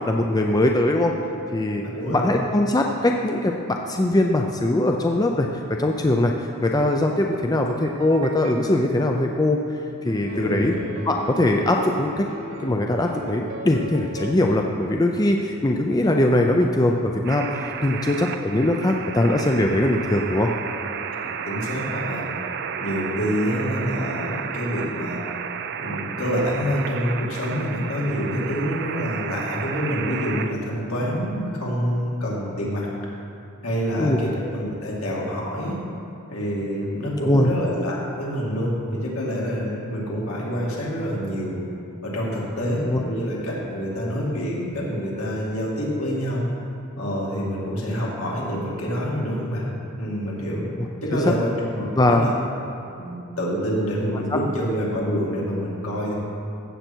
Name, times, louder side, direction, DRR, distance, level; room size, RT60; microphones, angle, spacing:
voice 1, 0.1-1.2 1.5-1.8 2.1-6.3 6.6-9.6 10.0-10.7 11.1-12.3 12.6-20.5 34.0-34.2 37.3-37.5 42.9-43.0 50.8-50.9 51.1-51.2 52.0-52.3, left 1 dB, 15° left, 2 dB, 0.4 m, -21 dB
voice 2, 1.8-2.3 10.3-10.7 21.2-22.3 22.8-25.2 25.8-32.9 33.6-35.8 36.3-41.6 42.0-46.4 47.0-49.7 50.0-50.7 51.0-52.3 53.0-56.1, equal, 75° left, -4 dB, 2.6 m, -27 dB
sound 1, 7.8-8.7 10.1-12.7 13.1-14.7, equal, 65° right, 1.1 m, -38 dB
sound 2, 17.2-30.5, right 7 dB, 50° right, 0.4 m, -32 dB
15.0 x 7.6 x 4.5 m, 2.7 s
head